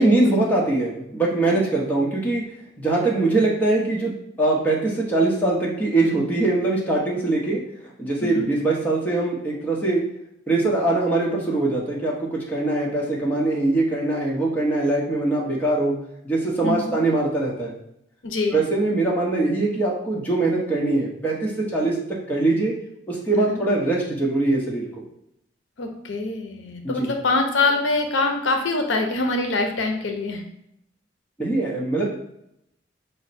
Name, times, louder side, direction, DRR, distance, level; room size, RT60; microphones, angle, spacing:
voice 1, 0.0-2.4 2.8-4.1 4.4-7.6 8.0-10.0 10.5-15.9 16.2-17.8 18.5-22.0 22.3-22.7 23.1-24.9 26.8-27.1 31.4-32.0, right 2 dB, 10° left, -5 dB, 0.8 m, -22 dB
voice 2, 8.2-8.5 16.6-17.0 18.2-18.6 23.3-23.6 25.8-30.4, left 3 dB, 75° left, 4 dB, 0.6 m, -24 dB
5.6 x 2.1 x 4.1 m, 0.78 s
head